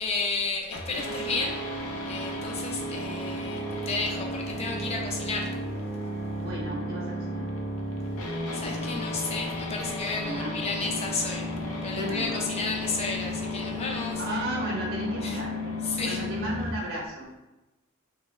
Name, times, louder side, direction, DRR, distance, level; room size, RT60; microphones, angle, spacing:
voice 1, 0.0-1.6 2.1-5.5 8.5-11.5 11.8-14.2 15.2-15.4 15.8-16.2, left 4 dB, 30° left, 1 dB, 0.4 m, -32 dB
sound 1, 0.7-16.7, left 1 dB, 90° left, 0.5 m, -33 dB
voice 2, 6.4-7.5 10.2-10.6 12.0-12.4 14.2-17.3, right 1 dB, 45° right, -3 dB, 0.6 m, -34 dB
3.0 x 2.2 x 3.1 m, 1.0 s
head